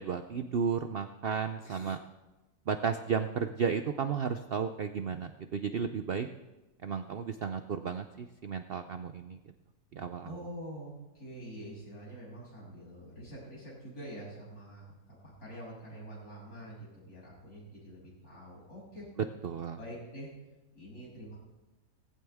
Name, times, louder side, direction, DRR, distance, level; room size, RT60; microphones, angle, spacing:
voice 1, 0.0-2.0 2.7-6.3 6.8-9.4 9.9-10.4 19.4-19.8, right 6 dB, 60° right, 9 dB, 0.6 m, -33 dB
voice 2, 10.2-14.9 15.2-19.1 19.8-20.3 20.7-21.4, equal, 70° left, -6 dB, 7.8 m, -46 dB
18.5 x 16.0 x 3.5 m, 1.0 s
omnidirectional pair, 1.7 m